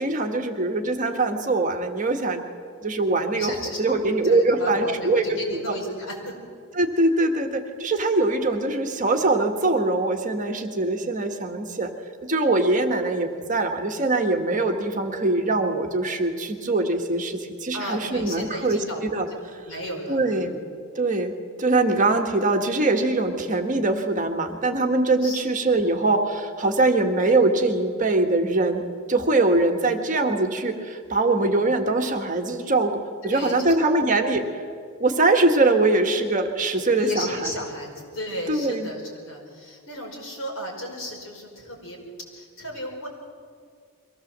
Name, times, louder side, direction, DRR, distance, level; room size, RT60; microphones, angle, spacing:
voice 1, 0.0-2.4 2.8-5.4 5.7-5.8 6.7-11.9 12.2-19.3 20.1-20.5 20.9-21.3 21.6-28.8 29.1-34.4 35.0-37.5 38.5-38.9, right 2 dB, 40° right, 3 dB, 1.6 m, -22 dB
voice 2, 3.3-6.3 17.7-19.0 19.3-20.5 25.2-25.4 33.2-33.7 37.0-42.0 42.3-43.1, equal, 70° left, 0 dB, 5.3 m, -34 dB
23.5 x 16.5 x 7.5 m, 2.2 s
head